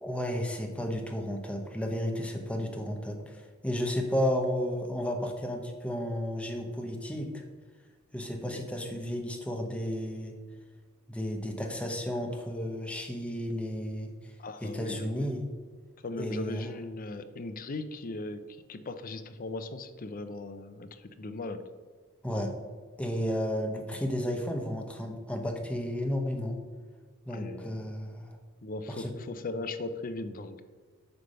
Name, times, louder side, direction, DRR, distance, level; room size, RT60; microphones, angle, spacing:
voice 1, 0.0-7.4 8.1-10.3 11.1-14.1 14.6-15.4 16.2-16.6 22.2-22.5 23.0-26.6 27.2-28.4 28.9-29.1, equal, 5° left, 2 dB, 0.9 m, -33 dB
voice 2, 14.4-15.3 16.0-21.6 27.3-27.8 28.6-30.6, left 2 dB, 45° left, 10 dB, 0.5 m, -38 dB
9.3 x 3.4 x 6.6 m, 1.5 s
head